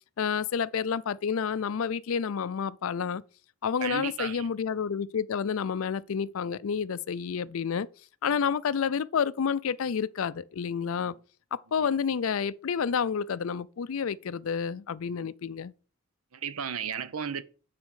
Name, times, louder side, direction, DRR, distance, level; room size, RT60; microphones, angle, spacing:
voice 1, 0.2-3.2 3.6-7.9 8.2-11.2 11.5-15.7, left 6 dB, 70° left, 0.4 m, -29 dB
voice 2, 3.8-4.5 11.0-11.1 11.8-11.9 16.3-17.4, right 7 dB, 80° right, 0.8 m, -34 dB
9.4 x 4.2 x 6.4 m
head